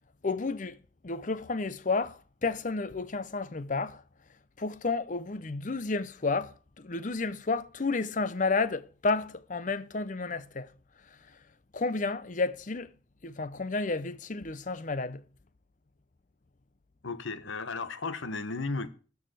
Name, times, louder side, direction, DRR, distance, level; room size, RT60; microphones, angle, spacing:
voice 1, 0.2-0.8 1.0-4.0 4.6-10.7 11.7-12.9 13.2-15.2, left 3 dB, 40° left, 0.6 m, -31 dB
voice 2, 17.0-18.9, left 3 dB, 80° left, 1.1 m, -34 dB
13.0 x 4.9 x 7.6 m
head